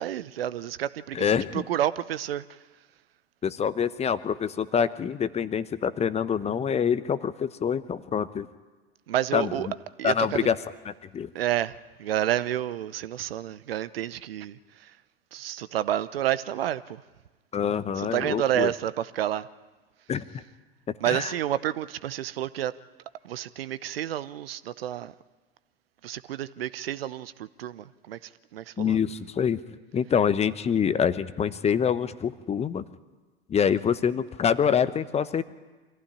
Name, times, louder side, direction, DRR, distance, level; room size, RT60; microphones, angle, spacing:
voice 1, 0.0-2.4 9.1-9.7 10.0-10.5 11.3-14.9 15.3-17.0 18.0-19.5 21.0-22.7 23.2-25.1 26.0-29.0, right 12 dB, 65° right, 0.9 m, -30 dB
voice 2, 1.1-1.6 3.4-8.5 9.3-9.5 10.0-10.6 11.1-11.3 17.5-18.7 20.1-20.4 21.1-21.3 28.8-29.6 29.9-32.8 33.5-35.4, left 7 dB, 20° left, 1.0 m, -25 dB
25.0 x 15.5 x 10.0 m
figure-of-eight pair, 85°, 31 cm